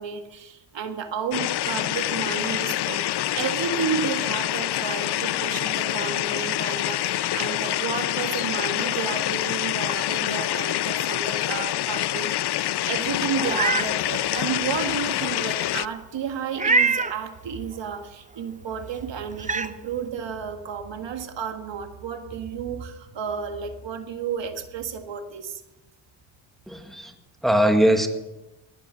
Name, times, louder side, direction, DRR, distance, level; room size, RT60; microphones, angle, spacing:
voice 1, 0.0-25.6, right 7 dB, 65° right, 6 dB, 1.9 m, -32 dB
sound 1, 1.3-15.9, left 14 dB, 60° left, 0.5 m, -26 dB
Meow, 13.4-13.9 14.4-14.5 16.5-17.2 18.7-18.8 19.4-19.7, right 4 dB, 15° right, 0.9 m, -23 dB
voice 2, 26.7-27.1 27.4-28.1, equal, ahead, 5 dB, 1.8 m, -20 dB
19.5 x 11.5 x 5.8 m, 1.0 s
cardioid pair, 90°, 47 cm